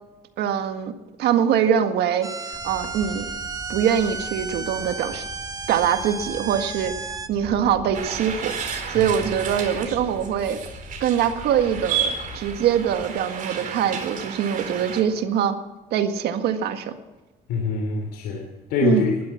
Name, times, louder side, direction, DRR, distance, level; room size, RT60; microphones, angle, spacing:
voice 1, 0.4-0.9 1.2-2.3 2.6-3.2 3.7-5.2 5.7-6.9 7.3-10.6 11.0-15.5 15.9-16.9 18.8-19.0, right 9 dB, 80° right, 7 dB, 1.8 m, -23 dB
sound 1, 2.2-7.3, right 4 dB, 20° right, 1.3 m, -33 dB
sound 2, 2.5-13.0, left 2 dB, 30° left, 6.9 m, -42 dB
sound 3, 7.9-15.0, right 7 dB, 50° right, 4.2 m, -32 dB
voice 2, 17.5-19.2, left 4 dB, 85° left, 2 dB, 3.1 m, -24 dB
19.0 x 13.0 x 5.9 m, 1.2 s
cardioid pair, 110°, 17 cm